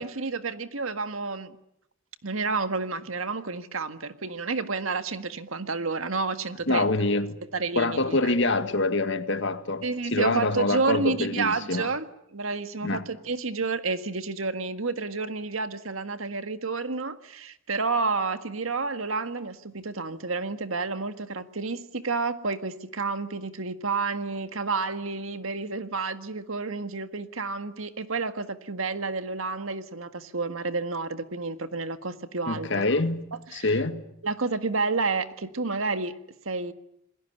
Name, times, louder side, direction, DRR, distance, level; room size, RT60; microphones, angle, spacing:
voice 1, 0.0-1.6 2.2-6.9 7.5-8.4 9.8-33.0 33.5-33.7 34.2-36.2 36.5-36.7, right 4 dB, 90° right, 1.7 m, -30 dB
voice 2, 6.7-7.4 7.8-11.9 12.8-13.0 32.5-33.3 33.5-34.0, left 2 dB, 60° left, 1.9 m, -25 dB
28.0 x 21.0 x 10.0 m
head